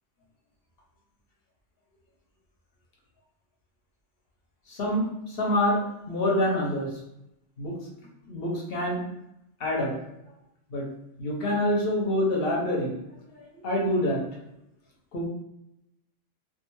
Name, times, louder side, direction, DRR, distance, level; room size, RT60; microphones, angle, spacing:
voice 1, 4.7-5.8 6.1-7.0 7.6-7.8 8.2-9.0 9.6-9.9 10.7-10.9 11.2-12.9 13.3-14.2 15.1-15.3, left 1 dB, 55° left, -2 dB, 0.8 m, -26 dB
2.4 x 2.3 x 3.0 m, 0.86 s
omnidirectional pair, 1.3 m